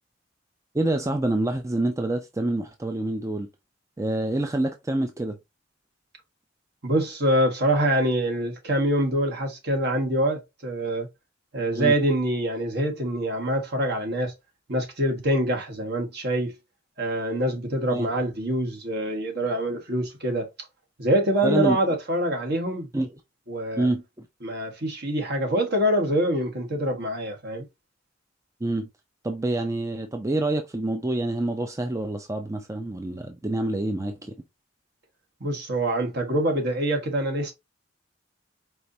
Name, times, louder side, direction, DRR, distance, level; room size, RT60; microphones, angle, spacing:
voice 1, 0.7-3.5 4.0-5.4 11.7-11.9 17.9-18.1 21.4-21.8 22.9-23.1 23.8-24.3 28.6-28.9 29.2-34.3, right 1 dB, 15° right, 0.5 m, -27 dB
voice 2, 6.8-11.1 11.5-14.3 14.7-16.5 17.0-20.5 21.0-22.9 23.5-23.9 24.4-27.6 35.4-37.5, right 1 dB, 60° right, 1.6 m, -25 dB
4.7 x 4.0 x 2.7 m
head